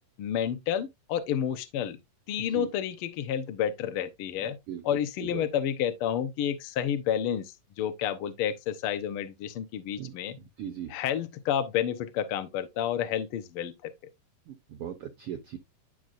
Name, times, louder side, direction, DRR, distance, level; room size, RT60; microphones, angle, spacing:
voice 1, 0.2-2.0 2.3-4.6 4.8-10.4 10.9-13.9, left 9 dB, 70° left, 1.3 m, -30 dB
voice 2, 2.4-2.7 4.4-5.4 10.0-10.9 14.5-15.6, right 9 dB, 80° right, 1.3 m, -40 dB
11.5 x 4.8 x 2.6 m
omnidirectional pair, 3.8 m